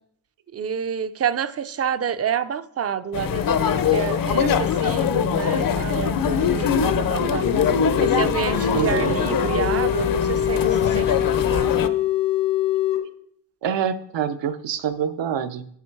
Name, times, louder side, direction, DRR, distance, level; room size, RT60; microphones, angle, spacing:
voice 1, 0.5-7.5 8.0-11.7, right 8 dB, 35° right, 0.4 m, -28 dB
sound 1, 3.1-11.9, left 8 dB, 50° left, 0.6 m, -23 dB
sound 2, 6.4-13.0, left 8 dB, 80° left, 1.5 m, -24 dB
voice 2, 8.7-9.2 13.6-15.7, right 8 dB, 80° right, 0.8 m, -26 dB
8.8 x 8.3 x 4.6 m
wide cardioid pair, 165°, 43 cm